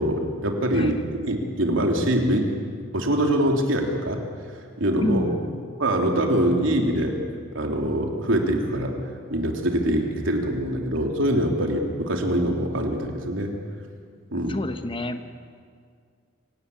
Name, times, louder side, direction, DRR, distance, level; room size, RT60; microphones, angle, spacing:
voice 1, 0.0-2.5 2.9-4.2 4.8-5.3 5.8-7.2 7.5-9.0 9.3-13.5 14.3-14.5, right 1 dB, 75° right, 2 dB, 3.3 m, -24 dB
voice 2, 5.0-5.7 14.5-15.2, left 1 dB, 25° left, 8 dB, 1.1 m, -29 dB
26.0 x 18.0 x 8.7 m, 2.1 s
head